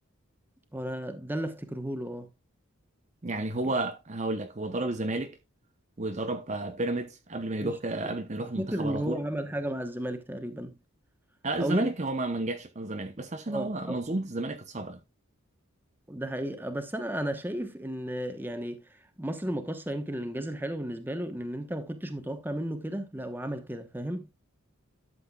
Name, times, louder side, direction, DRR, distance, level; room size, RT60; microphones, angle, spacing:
voice 1, 0.7-2.3 7.6-7.8 8.4-10.8 11.6-11.9 13.5-14.0 16.1-18.9 19.2-24.3, right 1 dB, 10° right, 1.0 m, -33 dB
voice 2, 3.2-5.4 6.0-9.2 11.4-15.0, right 2 dB, 35° right, 0.8 m, -32 dB
12.0 x 7.7 x 2.3 m
head